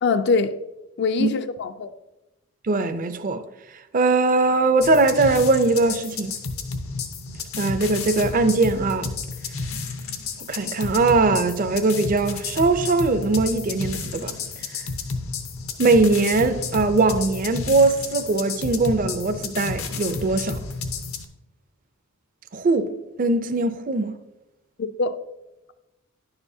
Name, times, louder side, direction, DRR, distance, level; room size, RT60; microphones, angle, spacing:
voice 1, 0.0-0.6 1.0-1.9 24.8-25.2, left 4 dB, 55° left, 0.4 m, -23 dB
voice 2, 2.6-3.4 3.9-6.4 7.6-9.1 10.5-14.3 15.8-20.6 22.5-22.9 23.2-24.2, right 3 dB, 40° right, 0.5 m, -21 dB
sound 1, 4.8-21.3, left 4 dB, 80° left, 0.8 m, -31 dB
10.5 x 6.9 x 2.7 m
head